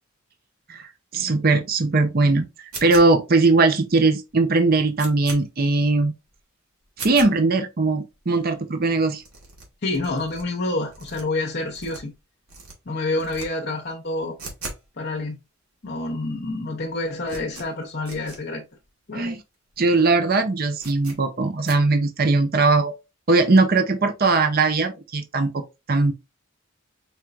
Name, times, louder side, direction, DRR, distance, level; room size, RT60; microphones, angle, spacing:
voice 1, 0.7-2.5 2.8-6.1 7.0-9.2 19.1-19.4 19.8-22.9 23.3-25.6 25.9-26.1, right 3 dB, 45° right, 0.6 m, -20 dB
sound 1, 2.7-3.4 3.9-4.0 4.3-4.4 4.7-5.4 5.9-6.0 6.3-6.4 6.9-7.3 7.9-8.0 8.1-8.2 8.4-8.5 8.8-8.9 9.2-10.4 10.9-12.2 12.5-12.7 13.1-13.5 13.7-14.9 15.1-15.2 15.9-16.0 16.1-16.5 16.8-18.4 18.8-18.9 19.1-19.2 19.7-19.9 20.1-20.2 20.8-21.2 21.6-21.8, right 3 dB, 85° right, 2.1 m, -39 dB
voice 2, 9.8-12.1 12.9-14.4 15.0-15.4 15.8-18.6 19.1-19.3, left 2 dB, 50° left, 0.8 m, -28 dB
4.8 x 4.4 x 2.5 m
head